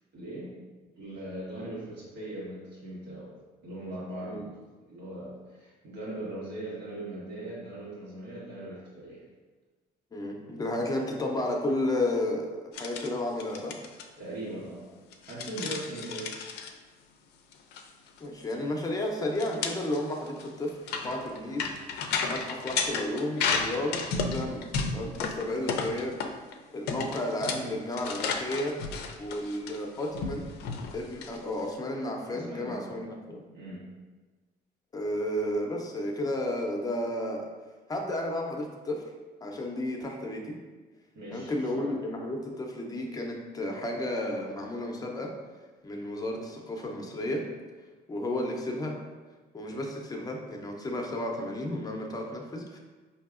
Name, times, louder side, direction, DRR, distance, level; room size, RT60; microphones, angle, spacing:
voice 1, 0.1-0.6 1.0-3.3 3.6-9.2 14.2-14.9 15.2-16.3 32.3-33.1 33.5-33.9 41.1-42.0, right 1 dB, 85° right, -7 dB, 1.4 m, -40 dB
voice 2, 10.1-13.8 18.2-21.7 22.2-26.2 26.7-28.8 29.2-30.5 30.9-33.4 34.9-37.5 37.9-39.0 39.4-40.6 41.3-45.3 45.8-47.5 48.1-49.0 49.5-52.8, left 1 dB, 20° left, 1 dB, 0.6 m, -32 dB
sound 1, 12.7-13.1 13.4-14.0 15.1-16.7 17.5-17.8 18.1-18.2 18.5-18.6 19.3-26.5 26.9-31.7, left 5 dB, 75° left, 0.4 m, -33 dB
4.5 x 2.7 x 2.4 m, 1.3 s
cardioid pair, 110°, 17 cm